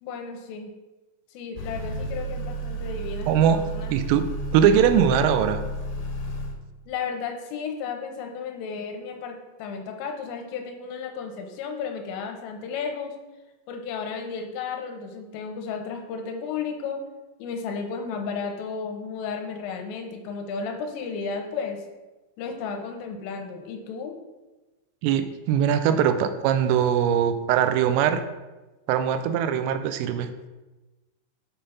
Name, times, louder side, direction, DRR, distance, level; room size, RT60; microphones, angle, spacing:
voice 1, 0.0-0.7 1.3-3.9 6.9-13.2 13.7-17.0 17.4-21.8 22.4-24.2, left 5 dB, 85° left, 3 dB, 3.3 m, -33 dB
Motor vehicle (road) / Accelerating revving vroom, 1.6-6.5, right 1 dB, 70° left, 3.1 m, -32 dB
voice 2, 3.3-3.6 3.9-4.2 4.5-5.6 25.0-28.2 28.9-30.3, right 9 dB, 85° right, 9 dB, 3.2 m, -21 dB
8.5 x 3.8 x 5.6 m, 1.1 s
omnidirectional pair, 5.8 m